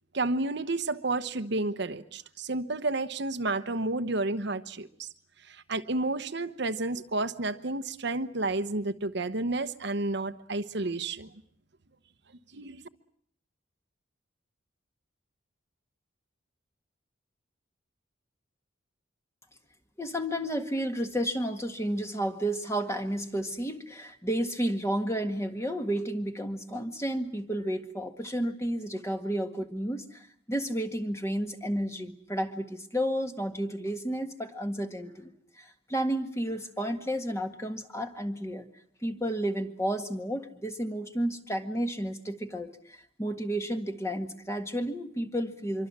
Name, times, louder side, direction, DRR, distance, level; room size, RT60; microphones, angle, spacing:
voice 1, 0.1-5.1 5.5-11.3 12.5-12.8, right 2 dB, 60° right, 9 dB, 1.1 m, -31 dB
voice 2, 20.0-38.7 39.0-45.9, equal, 15° left, 6 dB, 1.9 m, -32 dB
25.5 x 24.0 x 7.4 m, 0.66 s
head